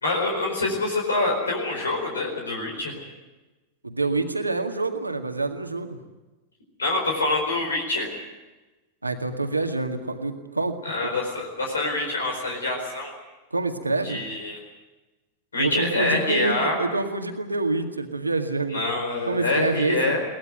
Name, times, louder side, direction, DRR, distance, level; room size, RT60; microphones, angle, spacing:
voice 1, 0.0-3.0 6.8-8.1 10.8-13.1 14.0-14.6 15.5-16.8 18.7-20.2, left 2 dB, 75° left, 1 dB, 4.5 m, -26 dB
voice 2, 3.8-6.0 9.0-10.8 13.5-14.2 15.6-18.8 19.3-20.1, right 3 dB, 80° right, 5 dB, 1.9 m, -27 dB
22.5 x 18.5 x 9.2 m, 1.1 s
figure-of-eight pair, 90°, 0 cm